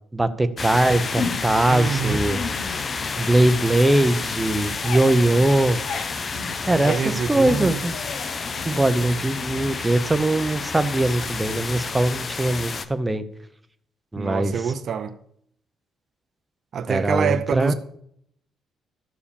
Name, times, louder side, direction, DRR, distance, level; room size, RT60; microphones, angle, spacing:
voice 1, 0.1-2.4 3.2-5.8 6.7-6.9 7.3-7.9 8.7-13.2 14.1-14.5 16.9-17.7, right 1 dB, 10° right, 0.7 m, -21 dB
sound 1, 0.6-12.9, left 4 dB, 30° left, 0.6 m, -30 dB
sound 2, 1.2-1.7 2.1-3.5 3.7-10.3, left 5 dB, 60° left, 1.1 m, -36 dB
voice 2, 1.7-2.2 6.8-7.8 14.2-15.1 16.7-17.7, right 7 dB, 50° right, 0.6 m, -26 dB
13.0 x 4.9 x 6.9 m
cardioid pair, 145°, 0 cm